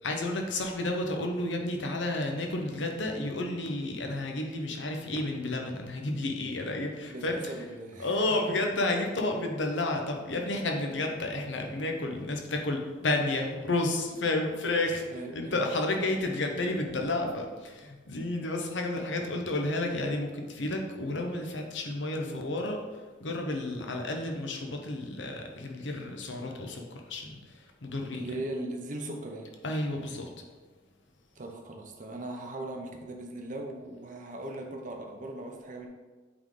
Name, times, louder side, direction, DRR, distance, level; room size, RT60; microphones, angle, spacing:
voice 1, 0.0-7.5 8.0-15.0 15.3-22.8 23.2-26.8 27.1-27.3 27.8-28.2 29.6-30.3, left 2 dB, 75° left, 2 dB, 0.9 m, -31 dB
voice 2, 7.1-8.2 8.5-8.6 15.1-15.6 22.1-22.4 28.1-29.5 31.4-35.9, right 1 dB, 45° right, 2 dB, 0.9 m, -39 dB
7.9 x 3.9 x 3.8 m, 1.3 s
head